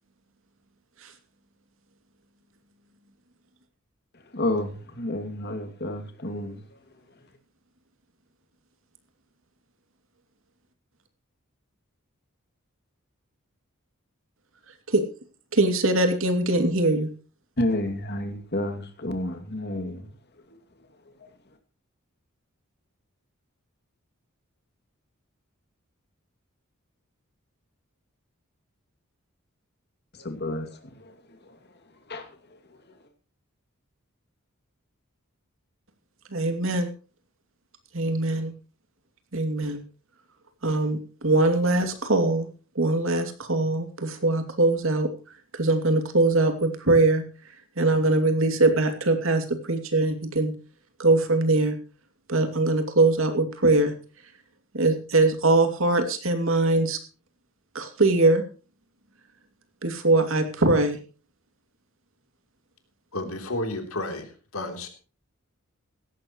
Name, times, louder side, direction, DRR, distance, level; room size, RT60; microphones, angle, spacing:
voice 1, 4.3-6.8 17.6-20.1 30.1-31.6 32.1-32.6, left 1 dB, 50° left, 2.5 m, -31 dB
voice 2, 15.5-17.1 36.3-36.9 37.9-38.5 39.3-39.8 40.6-42.5 42.7-45.1 45.5-47.2 47.8-50.5 51.0-51.8 52.3-53.9 54.7-57.0 57.7-58.4 59.8-61.0, right 2 dB, 65° right, 2.7 m, -22 dB
voice 3, 63.1-64.9, left 2 dB, 85° left, 3.3 m, -32 dB
17.0 x 15.0 x 3.1 m
head